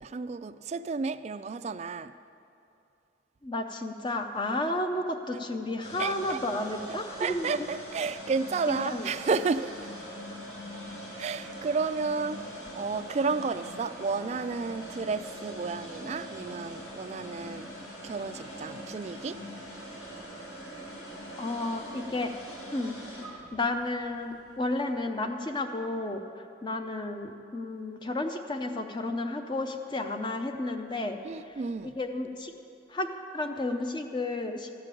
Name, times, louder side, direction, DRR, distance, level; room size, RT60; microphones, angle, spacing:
voice 1, 0.0-2.1 6.0-6.4 7.2-9.9 11.2-17.7 18.0-19.4 31.2-31.9, right 4 dB, 40° right, 0.3 m, -32 dB
voice 2, 3.4-7.7 8.7-9.1 21.4-22.3 22.7-23.0 23.5-26.2 26.6-31.2 31.8-32.5 32.9-33.1 33.3-34.7, left 2 dB, 25° left, 0.6 m, -32 dB
sound 1, 5.8-24.9, equal, 75° left, 2.6 m, -43 dB
13.0 x 5.2 x 9.1 m
head